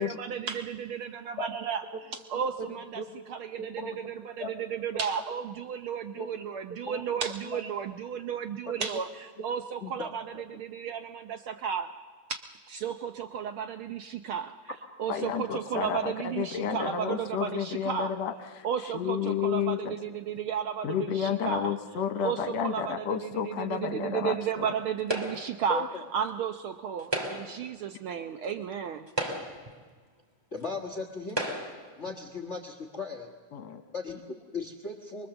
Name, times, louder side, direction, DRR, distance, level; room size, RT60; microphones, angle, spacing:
voice 1, 0.0-1.8 2.3-3.0 3.3-11.9 12.3-14.6 15.0-18.1 18.6-21.7 22.2-25.8 26.1-29.1, right 8 dB, 85° right, 8 dB, 1.1 m, -33 dB
voice 2, 2.6-3.1 3.6-4.5 6.1-6.3 6.8-7.0 8.6-8.9 9.8-10.1 25.7-25.9 30.5-31.5 32.0-33.3 33.9-35.3, left 3 dB, 35° left, 4 dB, 1.1 m, -37 dB
voice 3, 15.1-18.7 18.9-20.0 20.8-24.7 33.5-33.8, left 8 dB, 65° left, 8 dB, 2.4 m, -31 dB
sound 1, 25.1-25.6 27.0-27.6 28.5-28.6 29.1-29.7 30.6-30.7 31.3-31.9, right 1 dB, 10° right, 2.3 m, -33 dB
24.0 x 22.5 x 7.1 m, 1.5 s
omnidirectional pair, 3.4 m